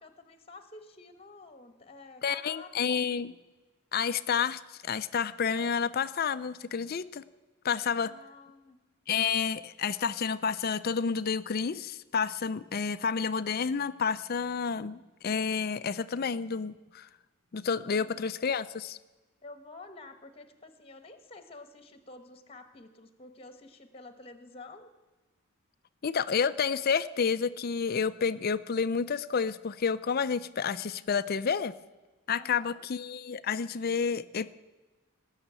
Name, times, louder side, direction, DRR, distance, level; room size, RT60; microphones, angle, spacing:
voice 1, 0.0-3.1 7.9-8.8 17.9-18.3 19.4-24.9 32.3-32.9, left 3 dB, 25° left, 10 dB, 1.2 m, -50 dB
voice 2, 2.2-3.3 3.9-7.2 7.6-8.1 9.1-17.1 17.5-19.0 26.0-31.7 32.3-34.5, left 6 dB, 45° left, 14 dB, 0.4 m, -30 dB
18.5 x 6.5 x 8.9 m, 1.1 s
head